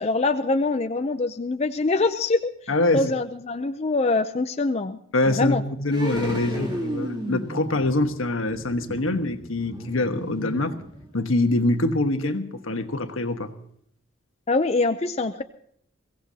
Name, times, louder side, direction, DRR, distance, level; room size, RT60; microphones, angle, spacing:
voice 1, 0.0-2.5 2.9-5.0 5.3-5.6 14.5-15.4, left 3 dB, 30° left, 0.5 m, -24 dB
voice 2, 2.7-3.1 5.1-10.8 11.1-13.5, left 2 dB, 80° left, 1.3 m, -24 dB
sound 1, 5.9-11.3 11.6-11.7, equal, 20° right, 2.9 m, -34 dB
22.5 x 16.5 x 2.8 m
head